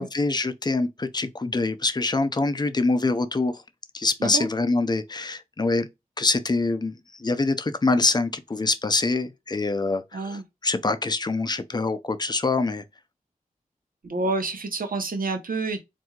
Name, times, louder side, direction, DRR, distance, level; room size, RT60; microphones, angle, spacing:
voice 1, 0.0-3.6 3.9-5.9 6.2-12.8, left 3 dB, 30° left, 0.5 m, -25 dB
voice 2, 10.1-10.4 14.0-15.8, right 3 dB, 70° right, 1.0 m, -28 dB
4.3 x 2.7 x 2.3 m
wide cardioid pair, 95°, 15 cm